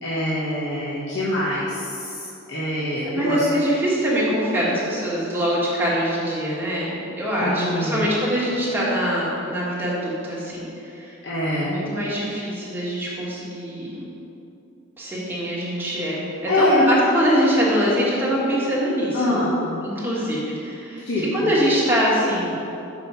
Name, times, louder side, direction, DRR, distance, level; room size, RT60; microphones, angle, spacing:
voice 1, 0.0-3.4 7.4-8.0 11.2-11.8 16.5-16.8 19.1-19.6 21.0-21.5, left 1 dB, 55° left, -8 dB, 1.1 m, -24 dB
voice 2, 3.0-11.1 11.6-14.0 15.0-19.4 19.8-22.6, equal, 10° right, -7 dB, 1.6 m, -23 dB
6.1 x 5.0 x 5.6 m, 2.8 s
head